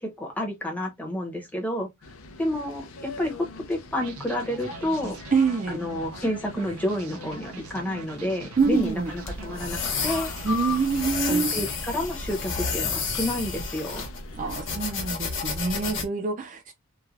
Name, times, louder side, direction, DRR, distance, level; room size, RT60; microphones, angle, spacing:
voice 1, 0.0-1.9 2.4-5.2 5.7-10.3 11.3-14.1, left 1 dB, 5° left, 0.7 m, -30 dB
sound 1, 2.0-15.1, left 5 dB, 75° left, 0.5 m, -41 dB
sound 2, 3.9-13.0, right 3 dB, 90° right, 0.6 m, -43 dB
voice 2, 5.3-5.8 8.6-9.1 10.4-11.5 14.4-16.7, right 5 dB, 35° right, 0.3 m, -25 dB
sound 3, 8.6-16.0, left 5 dB, 60° left, 1.0 m, -31 dB
3.1 x 2.1 x 2.4 m
head